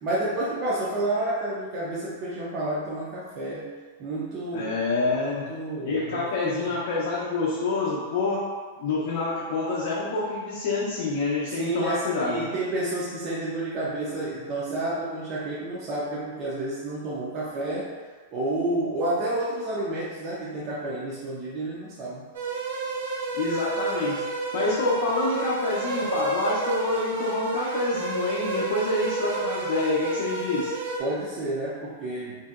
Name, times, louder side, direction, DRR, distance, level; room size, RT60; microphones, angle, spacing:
voice 1, 0.0-3.7 4.0-6.8 11.5-17.9 18.3-22.2 31.0-32.5, right 1 dB, 30° right, -7 dB, 0.4 m, -30 dB
voice 2, 4.5-5.5 5.9-8.5 8.8-12.4 23.3-30.7, left 3 dB, 55° left, -6 dB, 0.5 m, -27 dB
sound 1, 22.3-31.0, right 3 dB, 80° right, 0.5 m, -30 dB
2.8 x 2.6 x 2.4 m, 1.4 s
supercardioid pair, 165°, 0 cm